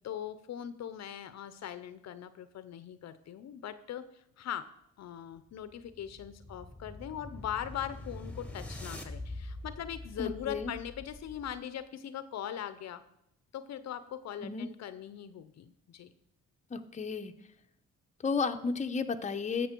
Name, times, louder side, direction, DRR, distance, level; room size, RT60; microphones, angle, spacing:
voice 1, 0.0-4.7 5.0-13.0 13.5-16.1, left 10 dB, 60° left, 13 dB, 0.7 m, -41 dB
sound 1, 5.4-11.7, left 2 dB, 5° left, 1.5 m, -44 dB
voice 2, 10.2-10.7 14.4-14.7 16.7-17.3 18.2-19.7, left 5 dB, 25° left, 6 dB, 0.8 m, -33 dB
13.0 x 6.7 x 4.5 m, 0.78 s
cardioid pair, 90°, 30 cm